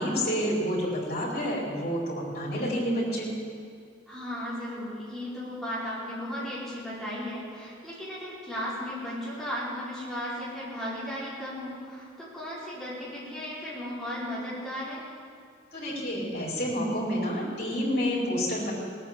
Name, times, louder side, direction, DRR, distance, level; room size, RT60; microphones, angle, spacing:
voice 1, 0.0-3.3 15.7-18.7, equal, 50° left, -5 dB, 4.6 m, -29 dB
voice 2, 4.1-15.0, equal, ahead, -10 dB, 4.8 m, -35 dB
18.0 x 9.0 x 7.5 m, 2.2 s
head